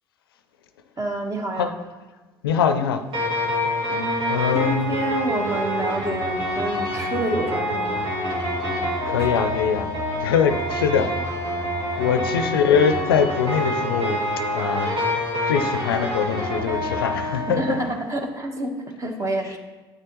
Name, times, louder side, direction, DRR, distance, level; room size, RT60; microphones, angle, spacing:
voice 1, 1.0-1.7 3.9-8.3 9.2-9.3 11.9-12.2 17.5-19.6, right 1 dB, 25° right, 3 dB, 1.3 m, -28 dB
voice 2, 2.4-3.0 4.3-4.9 9.0-9.9 10.2-11.1 12.0-14.2 14.5-14.9 15.5-17.8, left 7 dB, 90° left, 9 dB, 0.5 m, -22 dB
sound 1, 3.1-17.9, equal, 80° right, 2.3 m, -26 dB
9.2 x 6.6 x 3.1 m, 1.2 s
hypercardioid pair, 65°, 12 cm